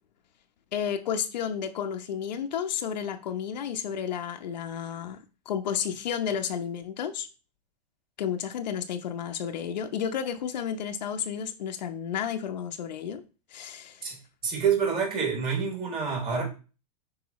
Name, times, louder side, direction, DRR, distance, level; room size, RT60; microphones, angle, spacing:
voice 1, 0.7-5.2 5.5-7.3 8.2-13.2 13.5-14.1, left 8 dB, 85° left, 1.0 m, -32 dB
voice 2, 14.4-16.4, right 6 dB, 25° right, 3.8 m, -27 dB
9.7 x 4.8 x 3.1 m
supercardioid pair, 145°, 21 cm